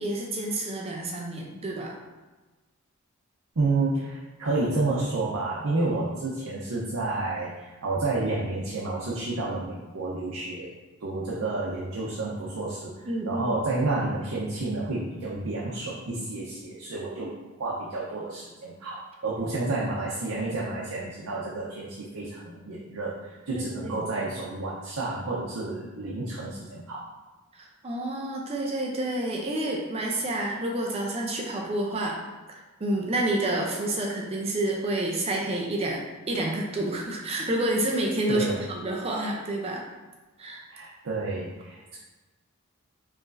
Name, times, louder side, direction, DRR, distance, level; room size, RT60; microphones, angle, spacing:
voice 1, 0.0-2.0 13.1-13.6 23.5-24.0 27.5-32.2 32.5-39.8 40.4-40.6, right 1 dB, 30° right, 0 dB, 0.4 m, -29 dB
voice 2, 3.6-10.7 11.0-17.3 17.6-18.9 19.2-27.0 38.3-38.6 40.7-42.0, right 2 dB, 85° right, -5 dB, 0.7 m, -30 dB
4.8 x 3.1 x 2.5 m, 1.2 s
head